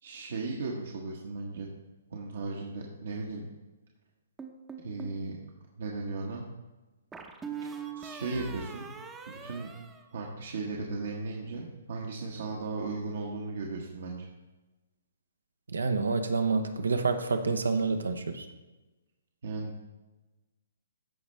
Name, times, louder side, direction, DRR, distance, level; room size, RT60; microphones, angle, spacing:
voice 1, 0.0-1.7 2.1-3.4 4.8-5.4 5.8-6.4 8.0-8.9 9.3-9.7 10.1-14.3 19.4-19.8, right 3 dB, 65° right, -1 dB, 1.2 m, -36 dB
sound 1, 4.4-5.2 7.1-10.7, right 6 dB, 10° right, 0.7 m, -42 dB
voice 2, 15.7-18.5, right 4 dB, 85° right, 7 dB, 0.8 m, -28 dB
14.0 x 5.1 x 3.2 m, 1.1 s
hypercardioid pair, 135°, 0 cm